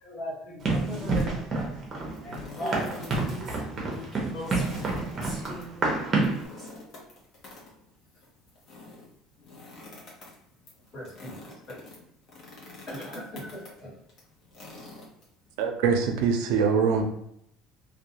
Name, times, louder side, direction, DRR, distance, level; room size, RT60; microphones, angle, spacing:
voice 1, 0.0-1.8 2.2-3.0 3.4-3.6 4.3-4.6, left 1 dB, 80° left, -4 dB, 1.0 m, -38 dB
Run, 0.6-6.5, right 3 dB, 30° right, 0.6 m, -28 dB
voice 2, 0.9-1.4 10.9-11.8 12.9-14.0, right 1 dB, 30° left, -7 dB, 1.3 m, -40 dB
sound 1, 2.0-3.6 3.9-4.0 4.4-15.6, left 2 dB, 45° left, 0.8 m, -47 dB
Female speech woman speaking, 2.5-6.7, equal, 5° right, 0.9 m, -42 dB
voice 3, 15.6-17.0, right 6 dB, 80° right, 4 dB, 0.4 m, -23 dB
2.3 x 2.2 x 2.8 m, 0.73 s
cardioid pair, 155°, 0 cm